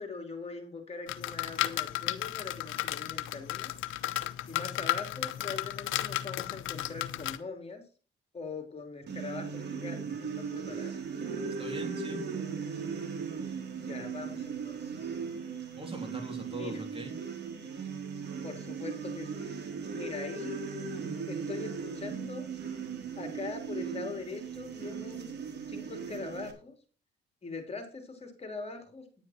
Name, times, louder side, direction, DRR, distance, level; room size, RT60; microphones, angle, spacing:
voice 1, 0.0-3.7 4.5-7.8 8.3-11.0 13.7-15.2 16.5-16.8 18.4-19.5 19.9-20.6 21.3-22.5 23.2-25.4 25.7-26.7 27.4-29.0, left 4 dB, 30° left, 5 dB, 3.2 m, -42 dB
sound 1, 1.1-7.4, left 14 dB, 85° left, 0.8 m, -34 dB
sound 2, 9.1-26.5, right 6 dB, 60° right, 3.0 m, -38 dB
voice 2, 11.6-12.2 15.8-17.1, right 2 dB, 25° right, 3 dB, 3.3 m, -40 dB
10.5 x 9.4 x 4.3 m, 0.36 s
cardioid pair, 90°, 20 cm